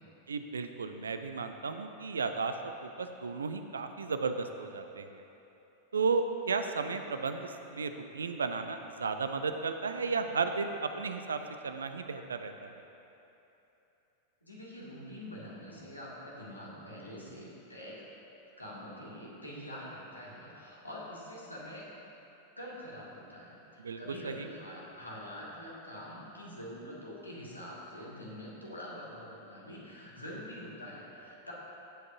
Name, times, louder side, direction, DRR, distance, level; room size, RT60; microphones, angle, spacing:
voice 1, 0.3-5.2 5.9-12.7 23.8-24.0 24.2-24.5, right 4 dB, 70° right, 8 dB, 0.6 m, -34 dB
voice 2, 14.4-18.0 18.6-21.9 22.6-31.5, equal, 85° left, -6 dB, 2.2 m, -45 dB
17.0 x 8.0 x 2.7 m, 3.0 s
figure-of-eight pair, 90°, 0 cm